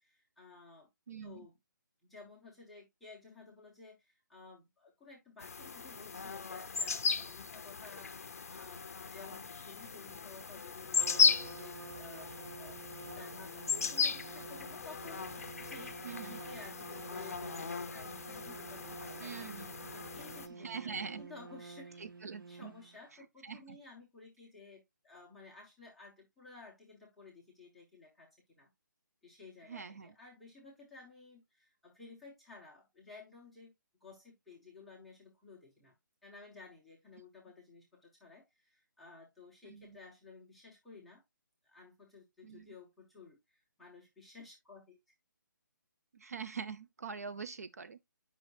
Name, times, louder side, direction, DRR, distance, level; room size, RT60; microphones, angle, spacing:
voice 1, 0.0-0.9 1.2-1.5 2.0-12.9 13.2-19.5 19.9-22.0 22.5-28.7 29.2-33.7 34.0-36.0 36.2-41.2 41.6-45.0, left 4 dB, ahead, 0.5 m, -55 dB
voice 2, 1.1-1.5 16.0-16.4 19.2-19.8 20.6-21.2 22.0-22.7 23.4-23.8 29.7-30.2 39.6-40.0 42.4-42.7 46.1-48.0, right 6 dB, 50° right, 0.6 m, -44 dB
sound 1, 5.4-20.5, left 6 dB, 45° left, 0.5 m, -36 dB
Trumpet, 10.9-23.1, right 4 dB, 85° right, 0.7 m, -50 dB
9.3 x 5.3 x 2.3 m
hypercardioid pair, 180°, 11 cm